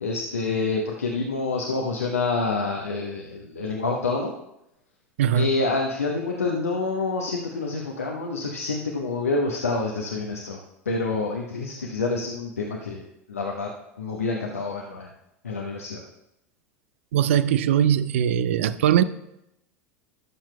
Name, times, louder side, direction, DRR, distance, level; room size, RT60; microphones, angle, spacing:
voice 1, 0.0-4.3 5.3-13.0 13.3-13.7 14.0-15.1 15.4-16.0, left 3 dB, 75° left, 0 dB, 1.0 m, -27 dB
voice 2, 5.2-5.5 17.1-19.0, right 10 dB, 60° right, 15 dB, 0.4 m, -20 dB
16.5 x 7.4 x 2.2 m, 0.85 s
figure-of-eight pair, 80°, 8 cm